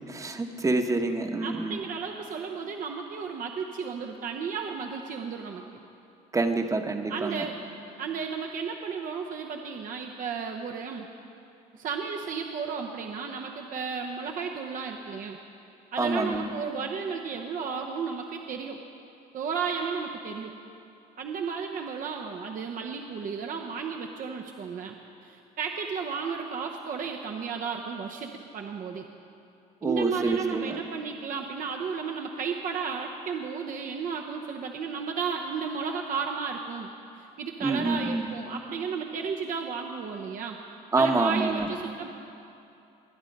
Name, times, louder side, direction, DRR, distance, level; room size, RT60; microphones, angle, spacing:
voice 1, 0.1-1.8 6.3-7.5 16.0-16.4 29.8-30.8 37.6-38.3 40.9-41.7, right 2 dB, 20° right, 5 dB, 1.0 m, -27 dB
voice 2, 1.4-5.6 7.1-7.5 8.0-11.1 11.7-15.4 15.9-18.8 19.3-20.5 21.2-24.9 25.2-29.1 29.8-40.6 41.0-42.1, right 6 dB, 50° right, 2 dB, 0.8 m, -33 dB
22.0 x 8.8 x 5.3 m, 2.7 s
cardioid pair, 110°, 17 cm